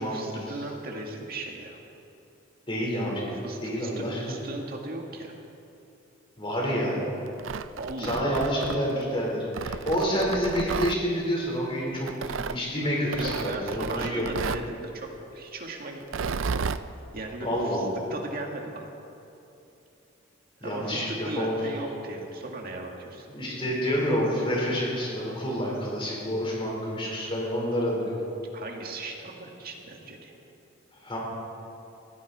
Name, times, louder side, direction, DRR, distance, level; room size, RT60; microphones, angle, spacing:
voice 1, 0.0-1.8 3.4-5.3 7.8-8.6 13.1-16.4 17.1-18.9 20.6-23.4 28.5-30.3, right 2 dB, 50° right, 1 dB, 2.1 m, -37 dB
voice 2, 2.7-4.3 6.4-7.0 8.0-14.2 17.4-17.9 20.6-21.6 23.3-28.1 31.0-31.2, equal, 30° left, -3 dB, 4.4 m, -28 dB
Tearing, 7.3-9.0 9.5-11.0 12.1-12.6 13.1-14.7 16.0-16.8, right 5 dB, 75° right, 0.5 m, -32 dB
19.0 x 16.0 x 4.3 m, 2.8 s
head